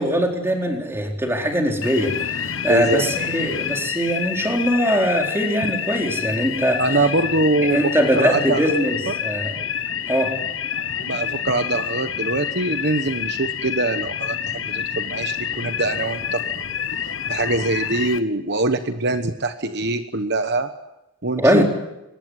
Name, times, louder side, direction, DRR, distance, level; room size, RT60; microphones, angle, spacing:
voice 1, 0.0-2.1 2.4-6.8 7.7-9.5 10.1-10.3 14.7-14.8 21.4-21.6, equal, 10° right, 1 dB, 4.1 m, -21 dB
sound 1, 1.8-18.2, left 8 dB, 65° left, 1.2 m, -28 dB
voice 2, 2.7-3.0 6.8-8.6 9.1-9.2 11.0-16.6 17.3-20.7 21.2-21.6, right 2 dB, 55° right, 8 dB, 1.1 m, -23 dB
23.5 x 20.0 x 9.5 m, 0.93 s
head